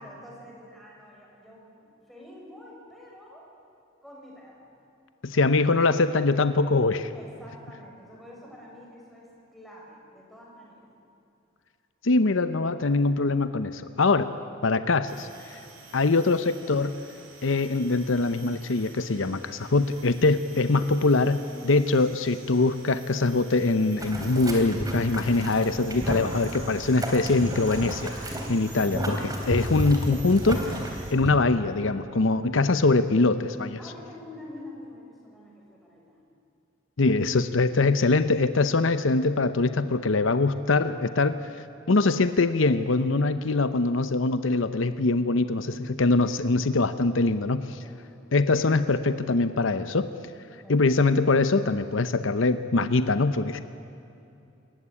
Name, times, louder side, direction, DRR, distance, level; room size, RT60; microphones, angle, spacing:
voice 1, 0.0-3.5 4.0-4.7 5.3-5.4 7.1-10.9 33.8-36.2 37.4-38.0 47.7-48.0 50.6-51.0, left 1 dB, ahead, -4 dB, 6.7 m, -47 dB
voice 2, 5.2-7.1 12.0-14.3 14.6-15.6 15.9-16.9 17.4-30.6 31.1-33.8 37.0-41.5 41.9-47.8 48.3-50.1 50.7-53.6, left 3 dB, 70° left, 11 dB, 0.8 m, -23 dB
sound 1, 15.1-31.1, right 5 dB, 90° right, 4.7 m, -49 dB
Boiling, 24.0-31.3, equal, 20° right, 3.4 m, -32 dB
27.0 x 15.0 x 9.8 m, 2.8 s
head